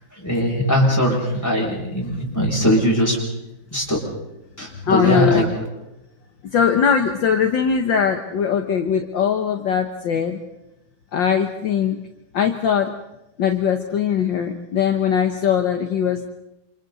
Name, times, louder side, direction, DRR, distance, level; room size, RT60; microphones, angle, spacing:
voice 1, 0.1-3.2 3.7-4.0 4.6-5.7, equal, 5° left, -2 dB, 7.6 m, -20 dB
voice 2, 4.9-5.5 6.5-10.4 11.1-12.0 12.3-12.9 13.4-16.3, left 7 dB, 65° left, 5 dB, 1.9 m, -20 dB
29.0 x 28.5 x 4.2 m, 0.90 s
omnidirectional pair, 2.3 m